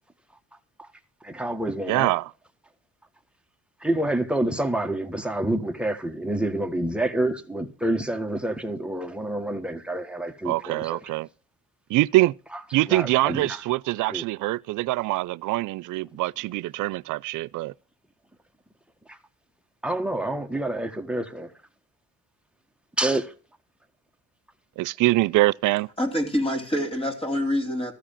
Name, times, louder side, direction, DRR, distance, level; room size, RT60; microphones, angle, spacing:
voice 1, 1.2-2.1 3.8-11.0 12.9-13.6 14.1-14.2 19.1-19.2 19.8-21.5 23.0-23.3, right 1 dB, 5° right, 1.4 m, -28 dB
voice 2, 1.9-2.3 10.4-11.3 11.9-12.3 12.7-17.7 24.8-25.9, right 18 dB, 85° right, 0.5 m, -24 dB
voice 3, 26.0-27.9, left 1 dB, 20° left, 3.0 m, -26 dB
14.0 x 4.9 x 8.9 m
cardioid pair, 90°, 30 cm